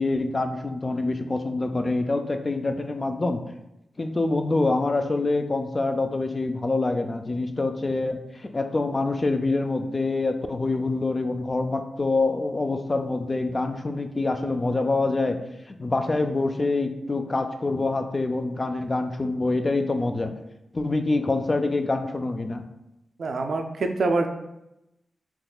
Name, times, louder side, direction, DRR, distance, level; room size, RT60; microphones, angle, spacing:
voice 1, 0.0-3.4 4.0-15.4 15.7-20.3 20.7-22.7, left 2 dB, 35° left, 6 dB, 0.3 m, -25 dB
voice 2, 23.2-24.3, right 3 dB, 70° right, 5 dB, 0.3 m, -25 dB
3.6 x 2.9 x 2.3 m, 0.90 s
cardioid pair, 75°, 0 cm